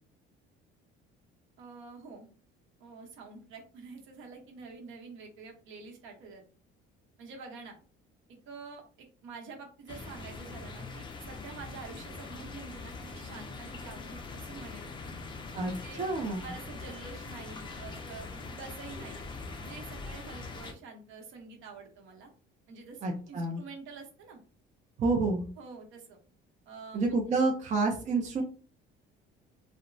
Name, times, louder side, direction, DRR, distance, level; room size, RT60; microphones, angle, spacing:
voice 1, 1.6-2.3 2.8-6.4 7.2-7.8 8.4-15.1 15.8-16.0 16.4-19.3 19.6-22.3 22.7-24.4 25.6-26.2 26.7-27.0, right 4 dB, 65° right, 1 dB, 0.9 m, -47 dB
sound 1, 9.9-20.7, left 3 dB, 25° left, 0.4 m, -43 dB
voice 2, 16.0-16.5 23.0-23.6 25.0-25.5 26.9-28.4, right 3 dB, 35° right, 2 dB, 0.5 m, -28 dB
2.8 x 2.1 x 2.6 m, 0.38 s
cardioid pair, 135°, 21 cm